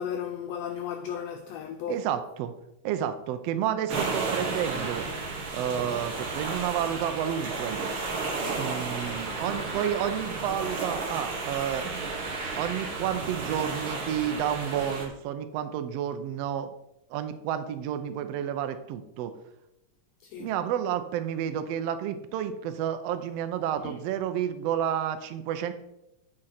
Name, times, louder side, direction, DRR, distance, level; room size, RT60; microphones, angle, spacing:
voice 1, 0.0-2.0 20.2-20.5 23.8-23.9, left 8 dB, 85° left, 1.5 m, -35 dB
voice 2, 1.9-2.5 2.8-5.0 5.5-7.8 8.5-11.9 12.6-16.7 17.1-19.3 20.4-25.7, right 9 dB, 85° right, 1.4 m, -30 dB
sound 1, 3.9-15.1, right 3 dB, 50° right, 2.0 m, -33 dB
8.7 x 6.3 x 4.2 m
omnidirectional pair, 3.6 m